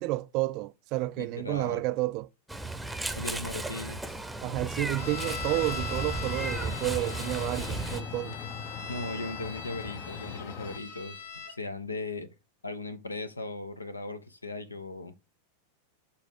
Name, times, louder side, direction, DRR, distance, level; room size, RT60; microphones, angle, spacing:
voice 1, 0.0-2.3 4.4-8.4 8.8-8.9, right 18 dB, 40° right, 0.4 m, -31 dB
voice 2, 1.2-1.8 3.2-4.0 8.9-12.3 12.6-15.2, left 2 dB, 80° left, 0.8 m, -38 dB
Meow, 2.5-8.0, right 2 dB, 5° right, 0.8 m, -35 dB
sound 1, 4.8-10.8, left 6 dB, 35° left, 0.6 m, -41 dB
sound 2, 5.0-11.6, left 6 dB, 60° left, 1.2 m, -40 dB
6.9 x 4.2 x 4.6 m
figure-of-eight pair, 90°, 0 cm